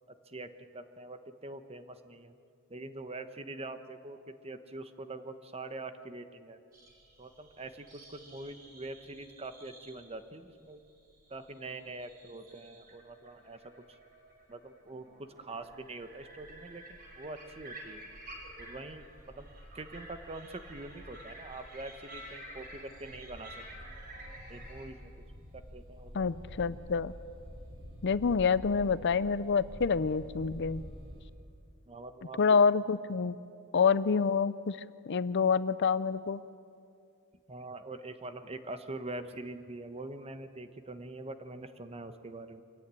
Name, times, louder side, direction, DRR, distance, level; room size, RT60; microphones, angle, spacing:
voice 1, 0.3-2.3 2.7-6.6 7.2-10.8 11.3-13.6 13.9-14.0 14.5-18.1 18.6-19.5 19.7-23.7 24.5-25.1 25.5-26.3 31.9-32.6 37.5-42.6, right 2 dB, 30° right, 9 dB, 1.2 m, -44 dB
sound 1, 6.7-24.9, right 1 dB, 45° right, 5.9 m, -51 dB
sound 2, 15.5-31.2, equal, 60° right, 7.3 m, -49 dB
voice 2, 26.1-27.1 28.0-30.8 32.4-33.4 33.7-34.8 35.1-36.4, left 5 dB, 55° left, 16 dB, 0.6 m, -27 dB
25.5 x 15.5 x 9.8 m, 2.4 s
head